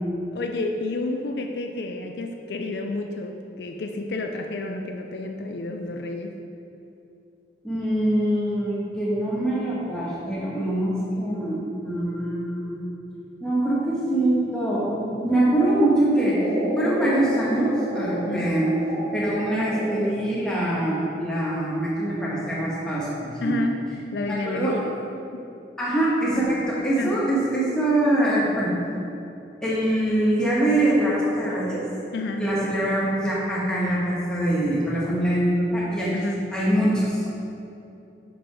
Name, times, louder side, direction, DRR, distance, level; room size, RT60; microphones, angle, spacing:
voice 1, 0.3-6.4 18.2-18.5 23.4-23.8 24.1-24.9 25.3-25.4 26.3-26.5 27.0-27.2 32.1-32.5 36.1-36.4, left 2 dB, 70° left, 4 dB, 0.4 m, -30 dB
voice 2, 7.6-12.8 13.4-16.5 16.8-18.7 19.1-23.6 24.3-24.8 25.8-28.8 29.6-31.8 32.4-37.3, right 1 dB, 5° left, -8 dB, 1.3 m, -23 dB
sound 1, 16.3-20.3, right 1 dB, 25° right, 1.2 m, -30 dB
6.0 x 4.6 x 4.7 m, 2.7 s
head